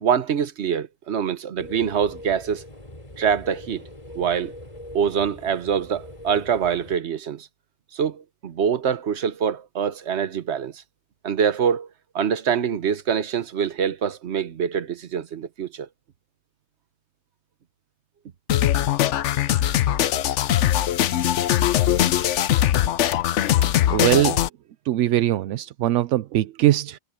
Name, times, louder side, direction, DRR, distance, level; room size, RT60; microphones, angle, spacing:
voice 1, 0.0-2.6 3.2-3.8 4.1-4.5 4.9-7.5 7.9-10.7 11.2-11.9 12.1-15.9, right 7 dB, 65° right, 1.3 m, -24 dB
sound 1, 1.6-7.0, left 1 dB, 30° left, 4.5 m, -42 dB
sound 2, 18.5-24.5, left 11 dB, 80° left, 1.0 m, -21 dB
voice 2, 23.9-24.5 24.8-27.0, right 14 dB, 85° right, 0.9 m, -21 dB
omnidirectional pair, 1.2 m